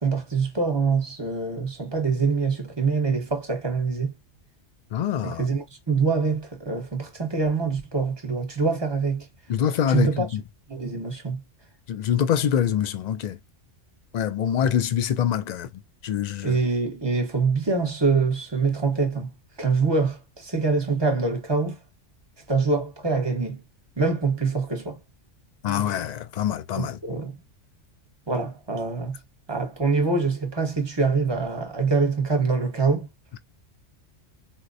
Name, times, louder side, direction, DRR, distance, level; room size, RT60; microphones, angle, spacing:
voice 1, 0.0-4.1 5.2-9.3 9.9-10.3 10.7-11.4 16.4-19.3 19.6-21.8 22.5-23.6 24.0-25.0 26.7-27.3 28.3-29.2 29.5-33.1, right 4 dB, 25° right, 1.0 m, -24 dB
voice 2, 4.9-5.5 9.5-10.4 11.9-13.4 14.1-15.7 16.0-16.6 25.6-27.0, left 9 dB, 70° left, 0.4 m, -25 dB
4.3 x 2.1 x 2.6 m
omnidirectional pair, 1.2 m